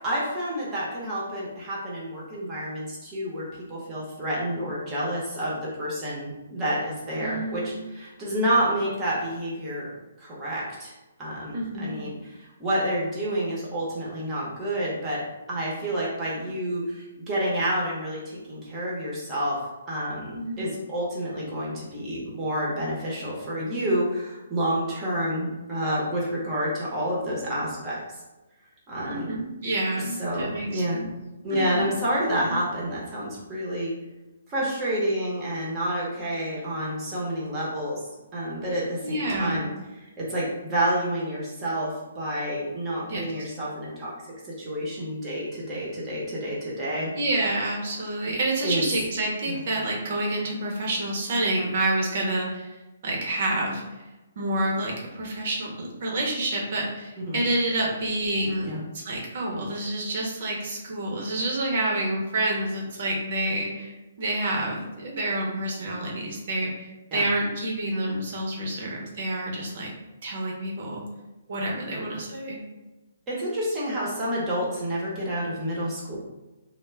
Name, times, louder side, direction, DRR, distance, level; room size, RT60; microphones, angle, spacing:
voice 1, 0.0-9.9 10.2-10.9 11.2-15.2 15.5-19.6 19.9-28.0 28.9-29.3 30.2-31.0 31.4-33.9 34.5-38.1 38.3-39.7 40.0-47.1 48.6-48.8 49.5-49.6 57.2-57.4 58.6-58.8 67.1-67.2 73.3-76.2, right 1 dB, 20° right, -6 dB, 0.8 m, -29 dB
voice 2, 7.2-7.8 11.5-12.0 20.3-20.7 29.0-31.1 31.5-31.9 32.4-32.6 39.0-39.6 43.1-43.2 47.1-52.8 53.0-54.0 54.4-69.9 70.2-71.0 71.5-72.6, right 1 dB, 50° right, -1 dB, 0.7 m, -28 dB
2.2 x 2.1 x 3.2 m, 1.1 s
hypercardioid pair, 160°, 0 cm